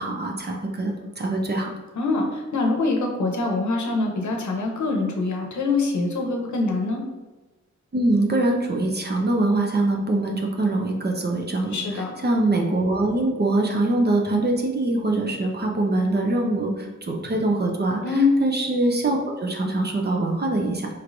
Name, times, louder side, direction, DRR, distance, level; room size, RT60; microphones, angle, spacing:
voice 1, 0.0-1.7 7.9-18.0 18.4-20.9, right 2 dB, 35° right, 1 dB, 0.6 m, -23 dB
voice 2, 2.0-7.0 11.7-12.1 18.0-18.3, left 3 dB, 70° left, 2 dB, 0.8 m, -24 dB
4.4 x 3.1 x 2.6 m, 1.2 s
wide cardioid pair, 100°, 30 cm